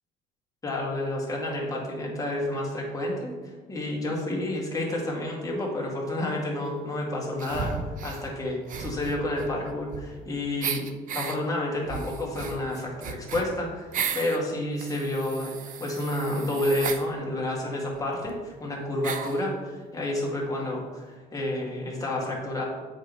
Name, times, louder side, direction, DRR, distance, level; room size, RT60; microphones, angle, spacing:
voice 1, 0.6-7.8 8.0-10.9 11.1-22.6, left 1 dB, 20° left, -3 dB, 2.0 m, -30 dB
sound 1, 7.4-8.2 8.7-10.3 10.6-11.4 11.9-14.4 14.8-17.0 17.9-18.0 18.2-18.3 19.0-19.4, right 7 dB, 50° right, 0.6 m, -34 dB
7.4 x 4.7 x 4.1 m, 1.4 s
cardioid pair, 110°, 17 cm